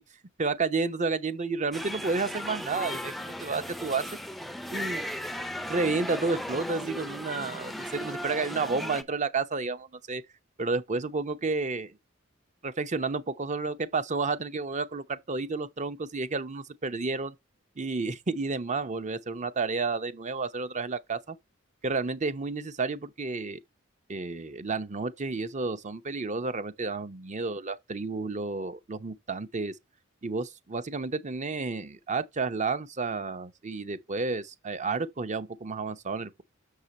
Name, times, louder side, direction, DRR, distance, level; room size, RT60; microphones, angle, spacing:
voice 1, 0.4-4.0 4.7-5.1 5.7-10.2 10.6-12.0 12.6-17.4 17.8-21.4 21.8-23.6 24.1-29.7 30.2-36.4, right 4 dB, 35° right, 0.7 m, -31 dB
sound 1, 1.7-9.0, equal, ahead, 0.5 m, -36 dB
6.6 x 6.5 x 4.2 m
head